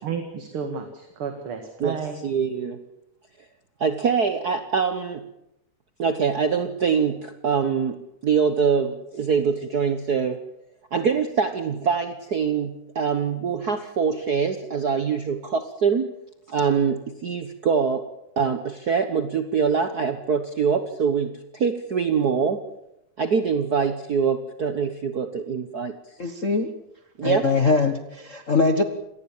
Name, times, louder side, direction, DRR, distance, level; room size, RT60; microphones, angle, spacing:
voice 1, 0.0-2.2, right 6 dB, 45° right, 6 dB, 2.6 m, -32 dB
voice 2, 2.2-2.8 3.8-5.2 6.0-10.4 10.9-16.1 16.5-18.1 18.4-22.6 23.2-25.9 27.2-27.4, right 6 dB, 80° right, 9 dB, 0.8 m, -24 dB
voice 3, 26.2-26.7 27.2-28.8, left 4 dB, 55° left, 7 dB, 0.8 m, -22 dB
27.0 x 18.5 x 7.3 m, 0.85 s
omnidirectional pair, 3.6 m